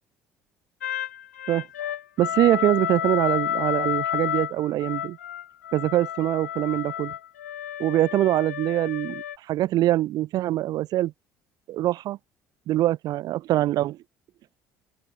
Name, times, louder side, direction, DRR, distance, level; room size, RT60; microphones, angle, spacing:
sound 1, 0.8-9.4, left 11 dB, 85° left, 3.9 m, -31 dB
voice 1, 2.2-5.2 5.7-7.1 7.8-11.1 11.7-12.2 12.7-14.0, right 14 dB, 60° right, 3.1 m, -23 dB
open air
hypercardioid pair, 60°, 8 cm